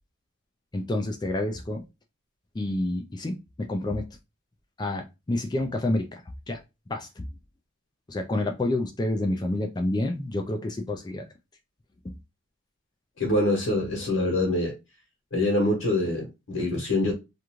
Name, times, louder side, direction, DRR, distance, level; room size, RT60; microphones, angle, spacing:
voice 1, 0.7-1.8 2.5-4.1 4.8-6.2 6.5-6.6 6.9-7.3 8.1-11.2 12.0-12.2, left 1 dB, 20° left, 0.3 m, -28 dB
voice 2, 13.2-14.7 15.3-17.1, left 1 dB, 80° left, 1.1 m, -25 dB
2.5 x 2.3 x 3.0 m
head